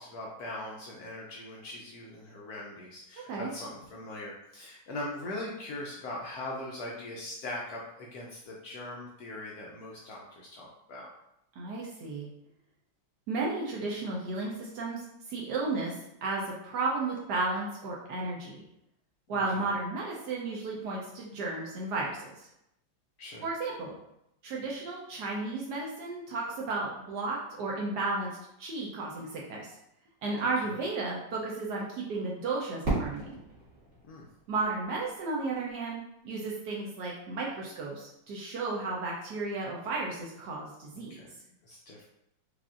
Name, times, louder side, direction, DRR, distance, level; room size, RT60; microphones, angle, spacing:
voice 1, 0.0-11.1 19.3-19.7 23.2-23.5 34.0-34.3 40.9-41.4 41.6-42.0, left 1 dB, 75° left, -2 dB, 0.9 m, -41 dB
voice 2, 11.5-12.3 13.3-15.9 16.2-18.6 19.3-22.3 23.4-23.9 24.4-28.3 28.6-29.7 30.2-33.3 34.5-41.2, right 3 dB, 70° right, -3 dB, 1.1 m, -33 dB
Fireworks, 32.8-35.7, right 2 dB, 40° right, 1.8 m, -36 dB
4.9 x 2.5 x 2.4 m, 0.81 s
omnidirectional pair, 2.1 m